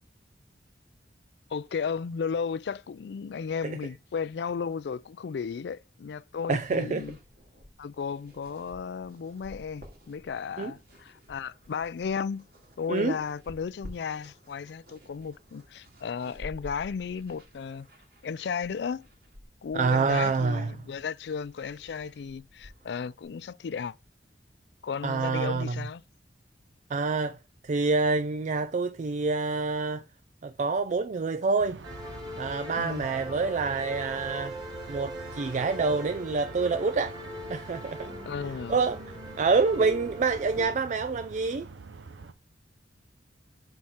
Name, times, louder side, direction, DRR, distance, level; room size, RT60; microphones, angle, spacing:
voice 1, 1.5-7.2 7.8-12.4 12.8-17.9 18.2-19.1 19.6-24.0 24.8-26.0 32.8-33.1 38.3-38.8, left 6 dB, 65° left, 0.4 m, -34 dB
voice 2, 6.5-7.0 10.6-10.7 12.9-13.2 19.7-20.7 25.0-25.7 26.9-27.4 27.6-30.0 30.4-31.8 32.4-34.6 34.9-37.2 37.5-38.2 38.7-39.0 39.4-41.7, right 4 dB, 40° right, 0.4 m, -27 dB
sound 1, 6.5-23.3, left 1 dB, 60° right, 2.5 m, -51 dB
sound 2, 31.6-42.3, right 4 dB, 90° right, 0.6 m, -45 dB
sound 3, 31.8-40.6, left 1 dB, 25° right, 1.8 m, -41 dB
6.0 x 4.2 x 4.9 m
head